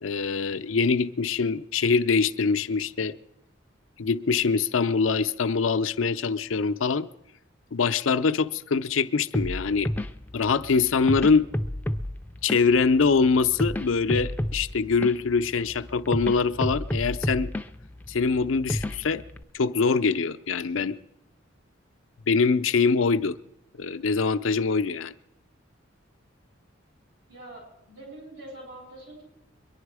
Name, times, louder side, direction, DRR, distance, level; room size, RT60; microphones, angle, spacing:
voice 1, 0.0-3.2 4.0-7.1 7.7-9.9 10.3-11.5 12.4-17.5 18.1-19.2 19.5-21.0 22.3-23.4 23.8-25.1, left 4 dB, 85° left, 0.6 m, -24 dB
sound 1, 9.3-19.4, left 1 dB, 10° left, 0.4 m, -32 dB
voice 2, 27.3-29.2, right 1 dB, 75° right, 7.8 m, -44 dB
23.5 x 11.0 x 4.8 m
head